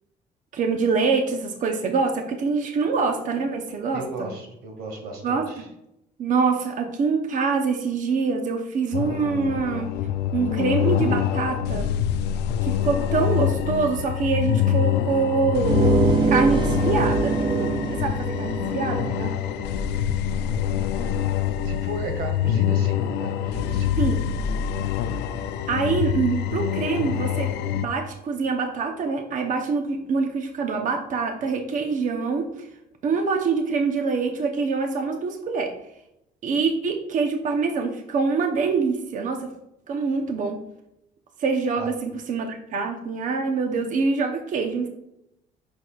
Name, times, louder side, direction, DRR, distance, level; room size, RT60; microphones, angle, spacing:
voice 1, 0.5-4.3 5.2-5.7 6.2-9.9 10.3-11.9 12.6-15.8 16.3-17.4 17.9-19.3 24.0-24.2 25.7-27.5 27.8-32.7 33.0-35.7 36.4-39.5 39.9-40.6 41.4-44.9, right 4 dB, 50° right, 4 dB, 0.8 m, -25 dB
voice 2, 3.9-5.5 21.6-24.0 41.8-41.9, right 3 dB, 65° right, 4 dB, 1.7 m, -35 dB
sound 1, 8.9-27.9, left 10 dB, 80° left, 0.5 m, -25 dB
sound 2, 15.6-20.9, right 5 dB, 30° right, 0.4 m, -25 dB
8.1 x 6.1 x 2.4 m, 0.83 s
cardioid pair, 110°, 17 cm